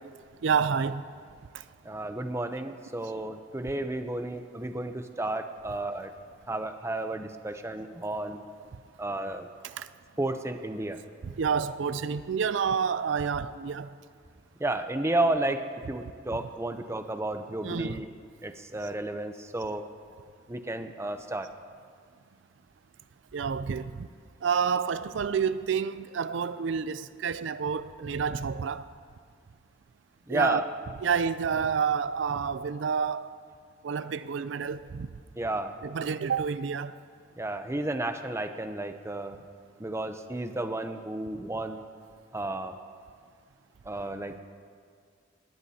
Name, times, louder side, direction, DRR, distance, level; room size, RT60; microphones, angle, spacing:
voice 1, 0.4-1.1 1.5-1.6 5.7-5.8 9.7-9.9 11.2-13.9 17.6-18.0 23.3-24.1 24.4-28.9 30.3-30.6 31.0-33.4 33.8-35.1 35.8-36.9, right 6 dB, 75° right, 0.4 m, -29 dB
voice 2, 1.8-6.1 6.5-8.4 9.0-9.5 9.8-9.9 10.2-11.0 14.6-18.1 18.4-19.8 20.5-21.5 30.3-30.7 35.4-35.7 37.4-39.4 39.8-41.8 42.3-42.7 43.9-44.4, right 2 dB, 15° right, 0.6 m, -32 dB
19.5 x 18.0 x 2.8 m
head